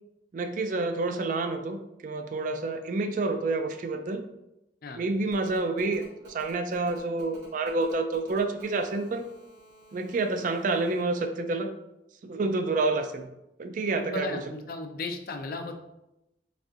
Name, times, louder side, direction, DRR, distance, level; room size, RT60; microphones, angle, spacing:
voice 1, 0.3-4.2 5.0-9.3 9.9-11.7 12.2-13.3 13.6-14.4, right 3 dB, 45° right, 7 dB, 0.3 m, -28 dB
Telephone, 5.3-11.0, equal, 70° right, 1.4 m, -53 dB
voice 2, 14.0-15.8, left 2 dB, 55° left, 6 dB, 0.4 m, -35 dB
4.1 x 3.5 x 2.4 m, 0.90 s
head